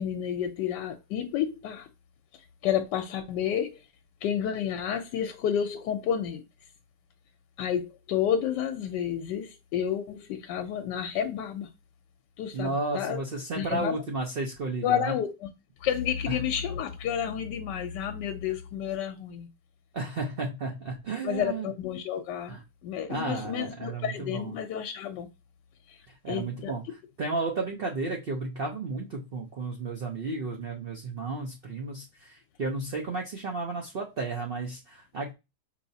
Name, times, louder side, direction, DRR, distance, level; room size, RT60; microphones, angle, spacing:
voice 1, 0.0-1.9 2.6-3.7 4.2-6.4 7.6-11.7 12.4-13.2 13.6-13.9 14.8-15.5 15.8-19.5 21.2-25.3 25.9-26.0 26.3-26.7, left 9 dB, 85° left, 1.2 m, -30 dB
voice 2, 12.5-15.1 16.3-16.4 19.9-21.7 22.5-22.6 23.1-24.5 26.1-35.3, right 3 dB, 55° right, 0.6 m, -33 dB
5.4 x 3.0 x 2.7 m
omnidirectional pair, 1.8 m